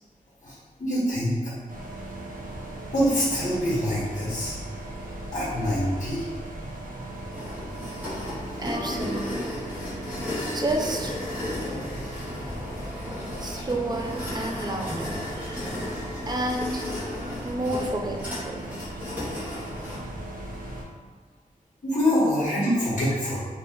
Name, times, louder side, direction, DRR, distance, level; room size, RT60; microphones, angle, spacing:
voice 1, 0.4-1.5 2.9-4.6 5.3-6.3 8.6-8.9 21.8-23.4, equal, 60° left, -11 dB, 1.5 m, -25 dB
sound 1, 1.7-20.8, right 1 dB, 75° right, 0.7 m, -38 dB
sound 2, 7.3-20.0, left 1 dB, 10° right, 1.4 m, -34 dB
voice 2, 8.6-9.6 10.5-11.1 13.4-15.6 16.3-16.9 17.4-18.2 18.4-18.6, right 1 dB, 30° right, 1 dB, 0.5 m, -30 dB
3.3 x 2.9 x 2.9 m, 1.4 s
wide cardioid pair, 90°, 14 cm